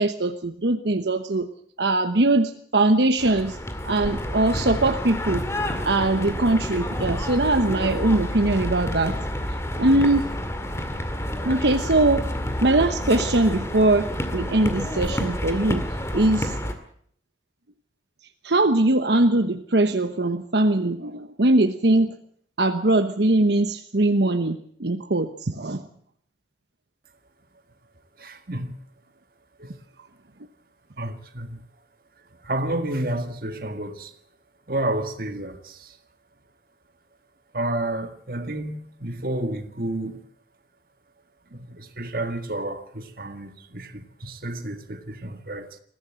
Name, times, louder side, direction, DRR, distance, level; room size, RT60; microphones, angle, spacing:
voice 1, 0.0-1.5 1.8-3.6 3.9-5.5 5.8-9.2 9.8-10.3 11.4-12.3 12.6-15.9 16.1-16.5 18.4-22.2 22.6-25.8, right 2 dB, 75° right, 1.1 m, -21 dB
sound 1, 3.2-16.7, equal, 15° left, 2.1 m, -29 dB
voice 2, 28.2-28.7 29.6-29.8 31.0-31.6 32.4-34.2 34.7-36.0 37.5-40.2 41.5-45.8, right 1 dB, 50° right, 1.9 m, -30 dB
21.5 x 15.5 x 7.7 m
head